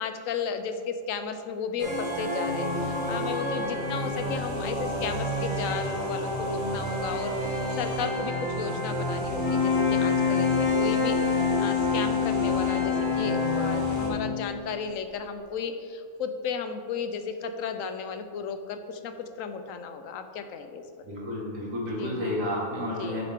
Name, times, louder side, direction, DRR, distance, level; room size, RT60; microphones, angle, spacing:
voice 1, 0.0-7.4 7.8-20.8 22.0-22.4 23.0-23.2, left 6 dB, 75° left, 8 dB, 1.0 m, -34 dB
sound 1, 1.8-14.1, equal, 35° right, 2.3 m, -30 dB
sound 2, 9.3-14.7, left 8 dB, 20° left, 0.8 m, -26 dB
voice 2, 21.0-23.2, left 1 dB, 70° right, -4 dB, 2.2 m, -31 dB
10.0 x 6.6 x 3.6 m, 2.3 s
omnidirectional pair, 1.4 m